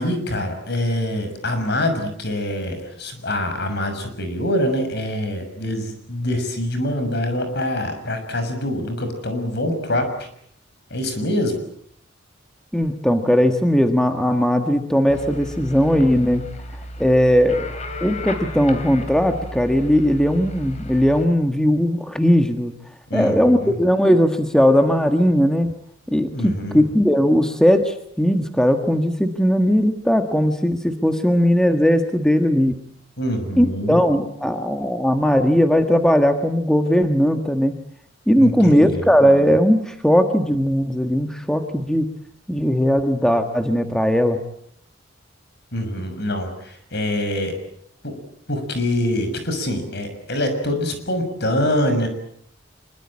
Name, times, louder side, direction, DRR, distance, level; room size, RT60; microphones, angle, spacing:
voice 1, 0.0-10.3 10.9-11.6 23.1-23.8 26.3-26.8 33.2-34.0 38.4-39.1 45.7-47.5 48.0-48.2 48.5-52.1, left 1 dB, 60° left, 8 dB, 6.3 m, -25 dB
voice 2, 12.7-16.4 16.7-17.7 18.0-22.7 23.1-25.7 26.1-32.8 33.6-37.8 38.3-42.1 42.5-44.4, equal, 5° left, 6 dB, 1.5 m, -18 dB
sound 1, 15.1-21.2, left 1 dB, 35° left, 3.5 m, -34 dB
25.5 x 23.0 x 8.7 m, 0.69 s
head